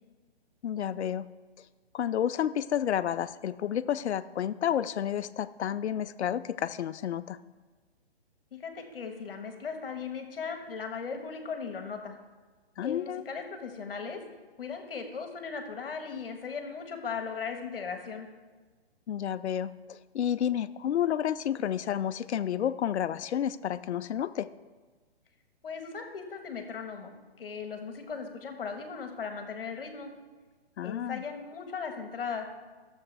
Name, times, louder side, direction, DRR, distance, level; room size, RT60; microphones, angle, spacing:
voice 1, 0.6-1.3 1.6-1.7 1.9-7.4 12.8-13.2 19.1-24.5 30.8-31.2, left 10 dB, 80° left, 13 dB, 0.5 m, -30 dB
voice 2, 8.5-12.2 12.8-14.2 14.6-18.3 25.6-30.1 30.8-32.5, left 5 dB, 55° left, 5 dB, 1.4 m, -38 dB
13.0 x 7.1 x 3.3 m, 1.4 s
hypercardioid pair, 165°, 33 cm